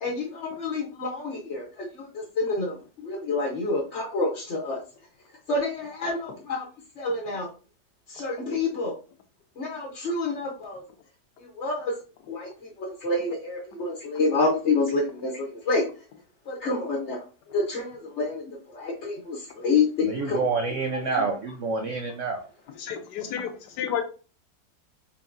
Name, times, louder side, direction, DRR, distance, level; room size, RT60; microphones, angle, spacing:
voice 1, 0.0-4.8 5.5-6.6 7.0-7.5 8.1-9.0 9.6-10.8 11.4-11.9 12.3-15.8 16.5-17.3 17.5-20.5 20.9-21.2, left 3 dB, 50° left, -1 dB, 0.9 m, -28 dB
voice 2, 20.0-22.4, right 4 dB, 80° right, 4 dB, 0.6 m, -28 dB
voice 3, 22.8-24.0, left 8 dB, 75° left, 6 dB, 1.2 m, -31 dB
4.5 x 3.5 x 2.5 m, 0.36 s
omnidirectional pair, 1.9 m